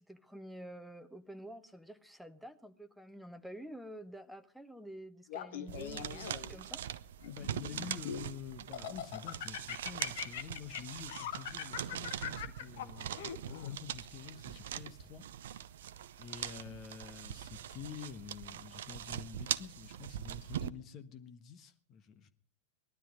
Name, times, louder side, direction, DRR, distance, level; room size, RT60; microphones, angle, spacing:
voice 1, 0.0-6.8, right 1 dB, ahead, 1.2 m, -49 dB
Laughter, 5.3-6.6 7.2-8.3 8.7-13.8, left 9 dB, 55° left, 1.3 m, -42 dB
sound 1, 5.7-20.7, right 10 dB, 60° right, 0.7 m, -42 dB
voice 2, 7.3-15.2 16.2-22.3, left 7 dB, 35° left, 1.4 m, -48 dB
19.5 x 12.5 x 5.2 m
figure-of-eight pair, 90°, 0 cm